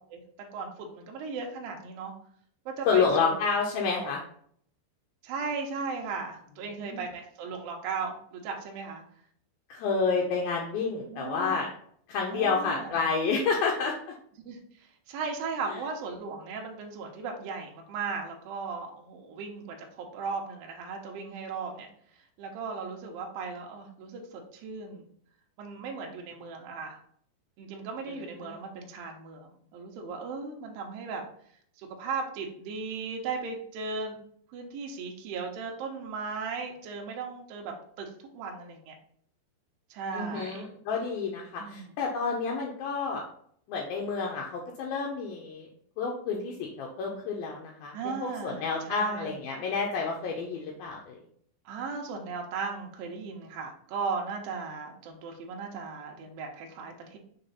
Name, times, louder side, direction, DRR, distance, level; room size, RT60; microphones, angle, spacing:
voice 1, 0.5-2.1 2.7-3.4 3.9-4.1 5.2-9.0 11.1-11.6 12.3-13.1 14.4-21.9 22.4-25.1 25.6-27.0 27.6-31.2 31.8-34.2 34.5-38.9 39.9-40.6 41.6-41.9 47.9-49.4 51.7-57.2, right 4 dB, 75° right, 1 dB, 2.1 m, -37 dB
voice 2, 2.9-4.2 6.8-7.0 9.7-11.7 12.1-13.9 28.4-28.6 40.1-43.2 43.7-45.7 46.0-51.2, left 5 dB, 90° left, -1 dB, 2.0 m, -29 dB
6.7 x 3.5 x 4.1 m, 0.62 s
omnidirectional pair, 5.3 m